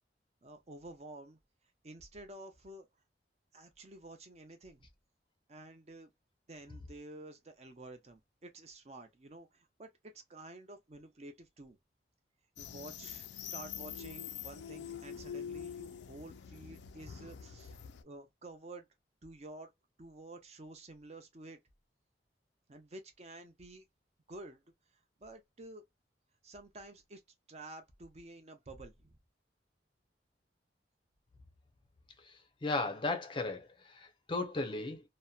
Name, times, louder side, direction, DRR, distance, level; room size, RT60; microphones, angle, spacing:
voice 1, 0.4-1.4 1.8-2.9 3.5-4.9 5.5-6.1 6.5-11.8 12.6-18.9 19.2-19.7 20.0-21.6 22.7-23.8 24.3-24.6 25.2-25.8 26.4-27.2 27.5-29.2, right 2 dB, 40° right, 0.6 m, -51 dB
sound 1, 12.6-18.0, left 8 dB, 90° left, 0.4 m, -45 dB
voice 2, 32.6-35.0, left 3 dB, 30° left, 0.5 m, -35 dB
2.7 x 2.1 x 2.2 m
head